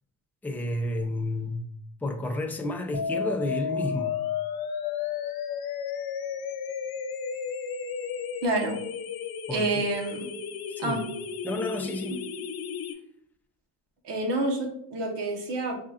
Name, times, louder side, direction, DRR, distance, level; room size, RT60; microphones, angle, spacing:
voice 1, 0.4-1.7 2.0-4.2 9.5-9.9 10.8-11.0 11.4-12.2, left 1 dB, 5° left, 0.5 m, -31 dB
sound 1, 2.9-12.9, left 7 dB, 60° left, 0.6 m, -33 dB
voice 2, 8.4-8.8 9.5-10.3 10.8-11.0 14.0-15.8, right 2 dB, 80° right, 1.3 m, -28 dB
5.4 x 3.7 x 2.4 m
cardioid pair, 120°, 42 cm